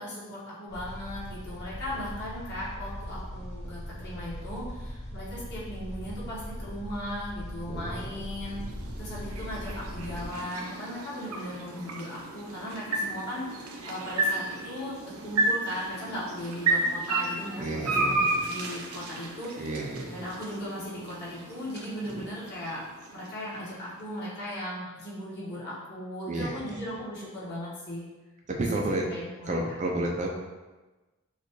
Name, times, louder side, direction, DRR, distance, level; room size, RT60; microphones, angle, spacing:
voice 1, 0.0-8.6 9.0-19.7 20.1-22.8 23.1-28.0 28.6-29.8, equal, 50° left, -8 dB, 1.5 m, -37 dB
sound 1, 0.7-10.3, equal, 30° left, 0.9 m, -40 dB
voice 2, 7.7-8.2 8.8-8.9 17.6-18.4 19.6-20.2 22.1-22.3 26.3-26.8 28.5-29.1 29.5-30.3, right 2 dB, 35° right, 0 dB, 0.4 m, -32 dB
sound 2, 7.8-24.0, right 2 dB, 75° right, 0.6 m, -33 dB
6.5 x 2.4 x 3.1 m, 1.2 s
head